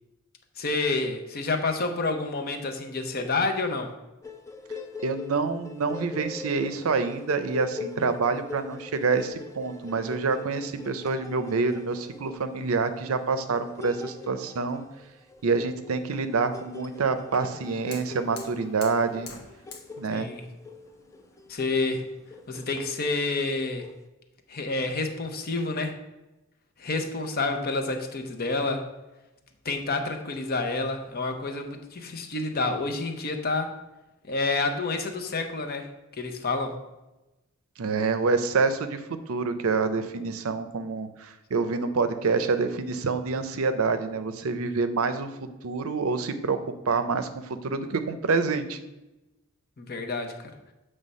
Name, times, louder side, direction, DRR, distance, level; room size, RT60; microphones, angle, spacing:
voice 1, 0.6-3.9 20.1-20.4 21.5-22.0 22.5-23.9 24.5-25.9 26.8-28.9 29.6-33.7 34.3-35.9 36.2-36.7 49.8-50.5, left 3 dB, 45° left, 5 dB, 0.7 m, -29 dB
sound 1, 4.2-24.0, left 4 dB, 15° left, 0.4 m, -42 dB
voice 2, 5.0-14.8 15.4-19.3 20.0-20.3 37.8-39.0 39.3-45.3 45.6-48.8, right 4 dB, 80° right, 10 dB, 0.6 m, -27 dB
Fire, 17.3-22.8, left 5 dB, 90° left, 1.1 m, -49 dB
7.4 x 3.3 x 5.4 m, 1.0 s
head